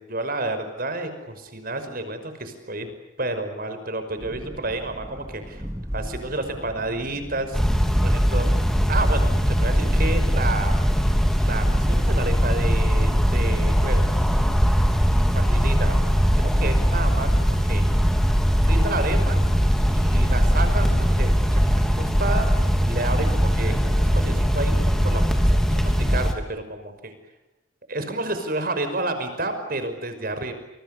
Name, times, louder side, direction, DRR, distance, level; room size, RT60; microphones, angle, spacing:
voice 1, 0.0-2.9 3.2-5.7 5.9-7.6 8.0-8.5 8.9-10.7 11.4-14.1 15.3-16.0 16.4-17.8 18.7-19.4 19.9-22.5 22.8-27.1 27.9-30.5, right 2 dB, 45° right, 8 dB, 5.7 m, -30 dB
sound 1, 4.2-17.0, equal, 15° right, 4.1 m, -37 dB
sound 2, 7.5-26.3, equal, ahead, 3.1 m, -20 dB
29.5 x 29.0 x 7.0 m, 0.96 s
head